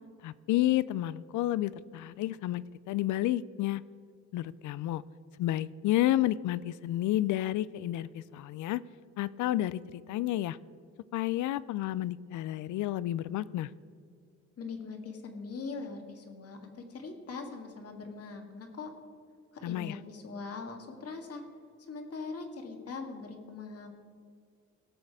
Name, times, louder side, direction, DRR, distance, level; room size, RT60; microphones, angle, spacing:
voice 1, 0.2-3.8 4.3-5.0 5.4-8.8 9.2-10.6 11.1-13.7 19.6-20.0, left 14 dB, 75° left, 19 dB, 0.5 m, -30 dB
voice 2, 14.6-18.9 19.6-21.4 21.9-23.9, left 4 dB, 50° left, 4 dB, 1.9 m, -41 dB
17.5 x 6.5 x 4.8 m, 2.3 s
cardioid pair, 90°, 30 cm